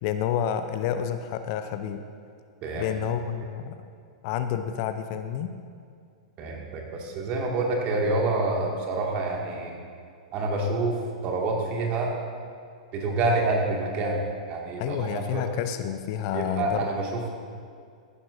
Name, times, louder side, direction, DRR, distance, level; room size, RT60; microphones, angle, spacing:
voice 1, 0.0-2.0 2.7-3.8 4.2-5.6 14.8-16.9, left 9 dB, 45° left, 9 dB, 0.6 m, -29 dB
voice 2, 6.4-9.7 10.3-11.0 11.2-12.1 12.9-15.4 16.3-17.3, right 2 dB, 40° right, -1 dB, 2.2 m, -27 dB
15.0 x 11.5 x 2.7 m, 2.2 s
figure-of-eight pair, 100°, 3 cm